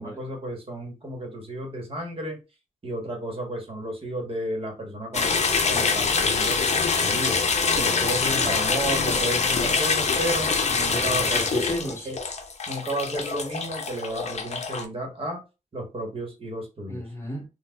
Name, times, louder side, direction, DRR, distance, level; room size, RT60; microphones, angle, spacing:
voice 1, 0.0-2.4 2.8-5.4 5.7-6.6 7.0-7.4 7.7-11.6 12.0-12.2 12.7-15.4 15.7-17.0, right 1 dB, 45° right, 1.2 m, -32 dB
sound 1, 5.1-14.9, left 5 dB, 55° left, 0.6 m, -24 dB
voice 2, 8.2-8.7 10.9-12.1 16.9-17.5, equal, 20° left, 1.2 m, -33 dB
4.0 x 2.3 x 2.3 m
wide cardioid pair, 90°, 14 cm